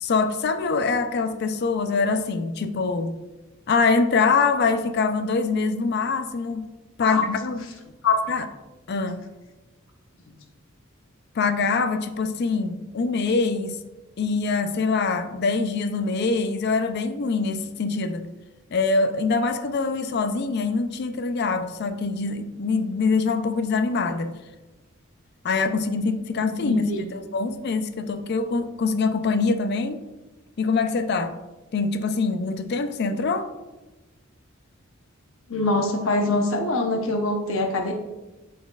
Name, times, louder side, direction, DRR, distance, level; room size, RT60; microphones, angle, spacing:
voice 1, 0.0-3.1 3.7-6.7 7.0-7.8 8.3-8.5 8.9-9.2 11.4-13.8 14.2-18.3 18.7-24.3 25.4-26.8 27.1-30.0 30.6-31.4 31.7-33.5, left 4 dB, 55° left, 0.4 m, -24 dB
voice 2, 26.4-27.0 35.5-37.9, left 2 dB, 80° left, 0.8 m, -24 dB
12.0 x 4.2 x 2.3 m
head